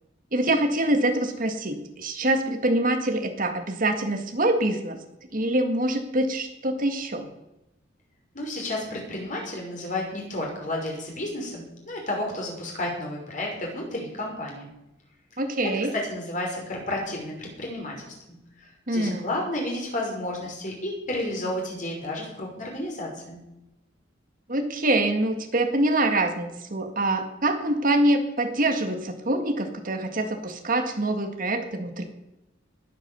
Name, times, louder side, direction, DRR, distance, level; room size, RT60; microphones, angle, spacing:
voice 1, 0.3-5.0 5.3-7.3 15.4-15.9 18.9-19.3 24.5-32.0, right 1 dB, 45° right, 6 dB, 1.8 m, -25 dB
voice 2, 8.3-14.7 15.9-18.4 18.9-23.4, left 1 dB, 40° left, -1 dB, 5.5 m, -31 dB
20.0 x 8.9 x 6.9 m, 0.91 s
head